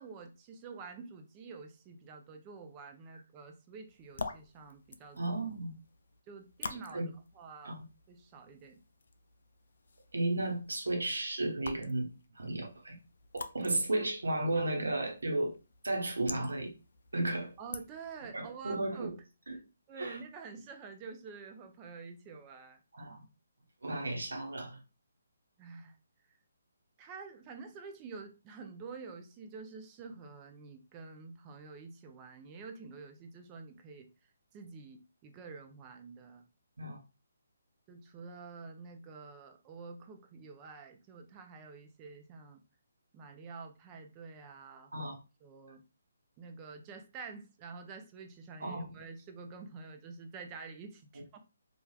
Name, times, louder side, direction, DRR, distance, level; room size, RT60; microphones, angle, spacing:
voice 1, 0.0-5.2 6.3-7.1 7.3-7.8 8.1-8.8 17.6-19.1 19.9-22.8 25.6-26.0 27.0-34.1 34.5-36.4 37.9-42.6 43.1-45.1 45.4-45.8 46.4-51.4, right 4 dB, 25° right, 0.5 m, -48 dB
sound 1, 3.9-18.3, left 4 dB, 70° left, 0.3 m, -48 dB
voice 2, 5.2-5.7 6.7-7.1 7.6-7.8 10.1-13.0 13.3-15.5 15.8-16.7 17.1-17.5 18.3-19.1 19.5-19.6 20.0-20.2 22.9-23.2 23.8-24.8 36.8-37.0 44.9-45.2 48.6-48.8, right 2 dB, 85° right, 0.9 m, -34 dB
3.1 x 2.4 x 2.2 m
hypercardioid pair, 150°, 0 cm